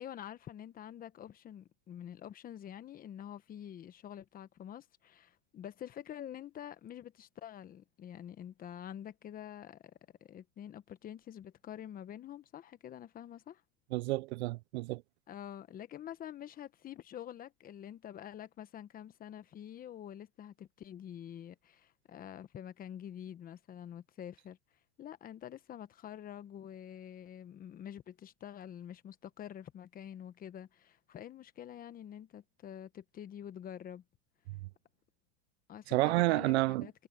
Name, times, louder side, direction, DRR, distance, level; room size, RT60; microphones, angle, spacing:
voice 1, 0.0-9.9 10.2-13.6 15.3-24.6 25.0-34.0 35.7-36.9, left 10 dB, 25° left, 1.1 m, -47 dB
voice 2, 13.9-15.0 35.9-36.9, right 21 dB, 65° right, 0.6 m, -30 dB
supercardioid pair, 140°, 36 cm